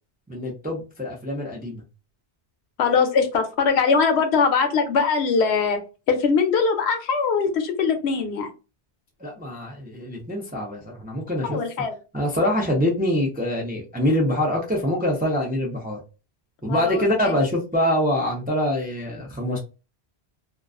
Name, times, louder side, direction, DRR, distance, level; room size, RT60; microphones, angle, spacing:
voice 1, 0.3-1.8 9.2-11.6 12.1-16.0 16.6-19.6, left 1 dB, 15° right, -2 dB, 0.4 m, -24 dB
voice 2, 2.8-5.8 6.1-8.5 11.5-12.0 16.7-17.4, left 5 dB, 75° left, 6 dB, 0.8 m, -21 dB
2.4 x 2.3 x 2.3 m, 0.31 s
omnidirectional pair, 1.1 m